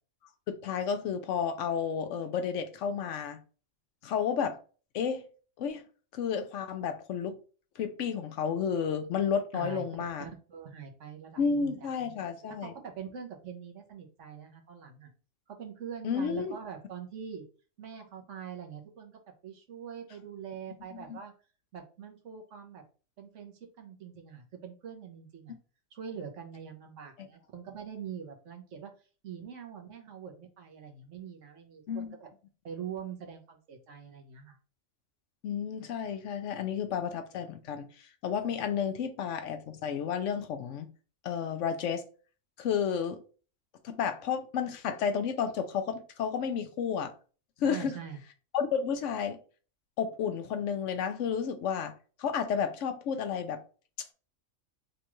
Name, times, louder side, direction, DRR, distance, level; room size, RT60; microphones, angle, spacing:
voice 1, 0.5-3.4 4.0-4.6 4.9-5.2 5.6-5.8 6.1-7.3 7.8-10.2 11.4-12.7 16.0-16.5 21.1-21.2 27.2-27.3 31.9-32.1 35.4-37.9 38.2-40.9 41.2-42.0 42.6-43.2 43.8-47.1 47.6-47.9 48.5-49.4 50.0-51.9 52.2-53.6, left 7 dB, 70° left, 0.9 m, -31 dB
voice 2, 9.5-11.9 12.5-15.1 15.5-17.4 17.8-21.3 21.7-22.8 23.2-25.6 25.9-32.3 32.6-34.6 47.6-48.2, right 7 dB, 70° right, 1.2 m, -44 dB
5.0 x 2.4 x 3.0 m
omnidirectional pair, 1.4 m